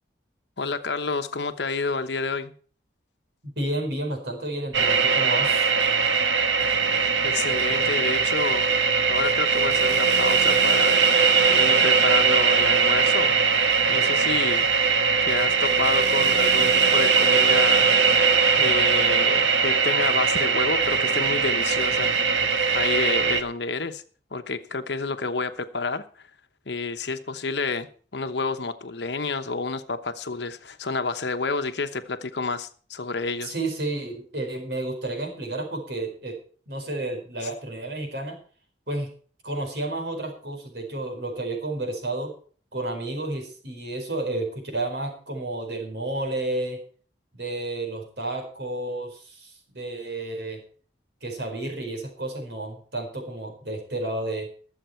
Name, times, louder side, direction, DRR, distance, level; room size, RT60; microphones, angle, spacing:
voice 1, 0.6-2.5 7.2-8.7 9.1-11.0 11.5-13.4 13.9-14.7 15.2-17.9 18.5-22.1 22.7-24.0 24.3-26.0 26.7-33.5, left 4 dB, 70° left, 9 dB, 1.0 m, -29 dB
voice 2, 3.4-5.7 33.4-36.4 36.7-38.4 38.9-39.1 39.4-42.3 42.7-46.8 47.3-50.6 51.2-54.5, right 2 dB, 65° right, 3 dB, 4.7 m, -31 dB
sound 1, 4.7-23.4, right 5 dB, 85° right, 1.3 m, -20 dB
21.0 x 7.4 x 4.5 m, 0.43 s
head